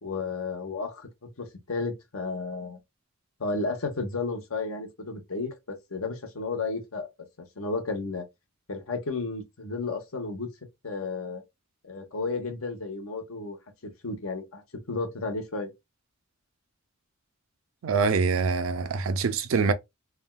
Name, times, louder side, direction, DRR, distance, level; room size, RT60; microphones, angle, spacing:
voice 1, 0.0-2.8 3.4-7.1 7.6-8.2 8.7-10.5 10.8-11.4 11.8-13.6 14.0-14.6 14.9-15.7, left 3 dB, 80° left, 0.9 m, -32 dB
voice 2, 17.8-19.7, right 4 dB, 70° right, 0.4 m, -24 dB
3.4 x 2.3 x 2.2 m
head